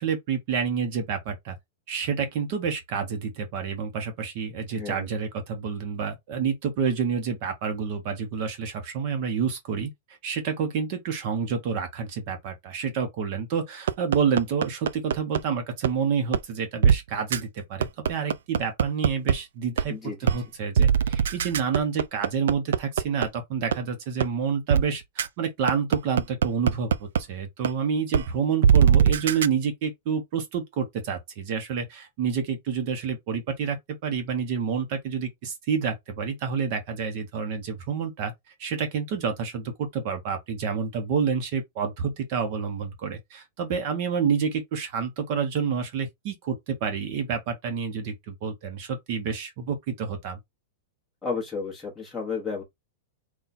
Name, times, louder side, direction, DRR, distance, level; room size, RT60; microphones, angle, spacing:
voice 1, 0.0-1.6 1.9-9.9 10.2-19.9 20.2-33.8 34.0-50.4, right 6 dB, 35° right, 0.8 m, -28 dB
voice 2, 4.7-5.1 19.9-20.3 51.2-52.6, left 5 dB, 5° left, 1.2 m, -32 dB
sound 1, 13.9-15.4 15.8-15.9 16.3-16.4 16.8-17.0 17.3-17.4 17.8-19.3 19.8-19.9 20.3-20.4 20.8-23.3 23.7-23.8 24.2-24.3 24.7-24.8 25.2-25.3 25.7-27.2 27.6-27.7 28.1-28.2 28.6-29.5, right 8 dB, 85° right, 0.4 m, -20 dB
4.0 x 2.3 x 4.1 m
supercardioid pair, 180°, 0 cm